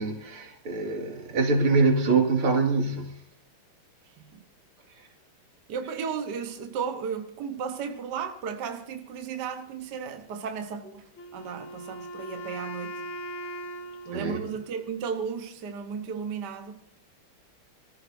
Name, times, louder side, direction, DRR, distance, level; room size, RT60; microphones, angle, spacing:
voice 1, 0.0-3.2 14.1-14.4, right 4 dB, 80° right, 3.1 m, -24 dB
voice 2, 4.0-4.4 5.7-13.0 14.0-16.8, right 6 dB, 60° right, 1.5 m, -34 dB
Wind instrument woodwind instrument, 11.2-15.2, right 1 dB, 70° left, 1.9 m, -40 dB
26.0 x 15.0 x 2.6 m
omnidirectional pair, 2.3 m